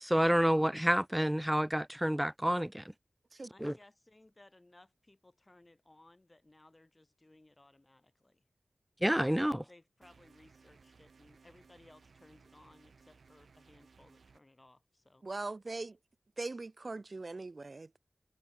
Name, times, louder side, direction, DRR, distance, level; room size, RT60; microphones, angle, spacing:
voice 1, 0.0-2.8 3.6-3.7 9.0-9.6, equal, 5° right, 0.3 m, -29 dB
voice 2, 3.5-8.4 9.7-15.2, left 2 dB, 30° left, 6.4 m, -62 dB
sound 1, 10.0-14.4, right 5 dB, 85° right, 5.7 m, -62 dB
voice 3, 15.2-15.9 16.4-18.0, right 3 dB, 50° right, 1.5 m, -40 dB
wide cardioid pair, 60°, 0 cm